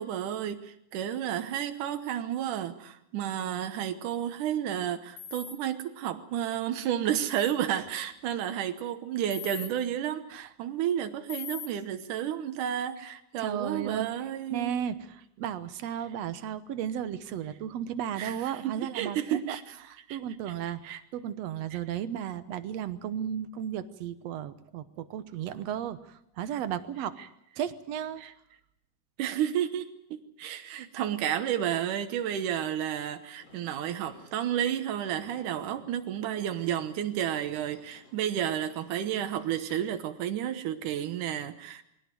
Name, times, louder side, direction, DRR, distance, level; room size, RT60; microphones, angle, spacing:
voice 1, 0.0-14.7 18.2-19.6 20.1-20.2 20.7-21.0 21.7-21.8 28.2-28.3 29.2-41.8, right 10 dB, 90° right, 8 dB, 2.7 m, -31 dB
sound 1, 5.2-5.5 7.2-7.5 9.3-9.7 11.3-11.7, left 8 dB, 70° left, 3.0 m, -40 dB
voice 2, 13.4-14.1 14.5-19.6 19.9-27.2 27.6-28.2, right 9 dB, 65° right, 12 dB, 2.0 m, -34 dB
Sliding door / Slam, 33.4-40.1, left 2 dB, 40° left, 4.4 m, -57 dB
21.5 x 17.0 x 9.3 m, 0.78 s
omnidirectional pair, 3.5 m